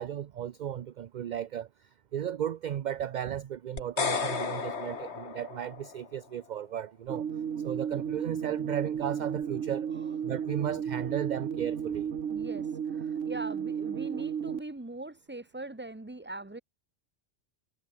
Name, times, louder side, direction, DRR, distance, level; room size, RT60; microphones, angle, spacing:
voice 1, 0.0-1.7 2.1-7.3 7.6-9.9 10.2-12.1, right 10 dB, 55° right, 0.5 m, -35 dB
sound 1, 3.8-6.1, left 5 dB, 65° left, 1.9 m, -33 dB
sound 2, 7.1-14.6, right 8 dB, 80° right, 1.5 m, -33 dB
voice 2, 12.3-12.6 12.9-16.6, right 2 dB, 10° right, 1.2 m, -41 dB
omnidirectional pair, 1.3 m